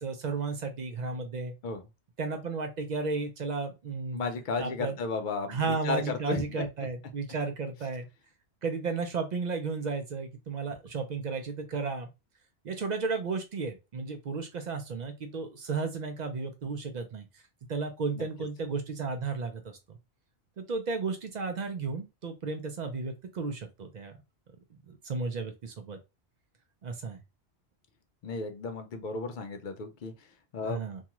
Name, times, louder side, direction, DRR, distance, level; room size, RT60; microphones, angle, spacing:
voice 1, 0.0-1.5 2.2-4.2 4.6-4.9 5.5-8.1 8.6-12.1 12.6-17.2 17.7-19.6 20.6-24.2 24.9-26.0 26.8-27.2 30.7-31.0, right 4 dB, 60° right, 0.4 m, -33 dB
voice 2, 4.1-6.7 18.2-18.3 28.2-30.8, left 3 dB, 60° left, 0.6 m, -34 dB
2.6 x 2.3 x 2.9 m
omnidirectional pair, 1.2 m